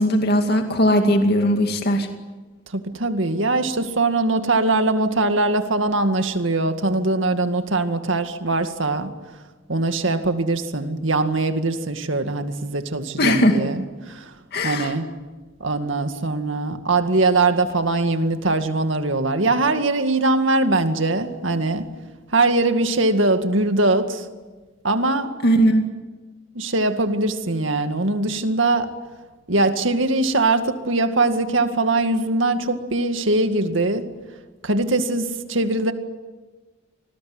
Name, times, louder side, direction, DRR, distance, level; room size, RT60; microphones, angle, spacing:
voice 1, 0.0-2.1 13.2-13.6 14.5-14.9 25.4-25.8, equal, 55° left, 4 dB, 2.3 m, -18 dB
voice 2, 2.7-9.1 9.7-14.3 14.6-15.1 15.6-21.9 22.3-24.3 24.8-25.3 26.5-28.9 29.5-34.1 34.6-35.9, right 2 dB, 75° right, 7 dB, 2.1 m, -21 dB
27.5 x 20.0 x 9.6 m, 1.3 s
head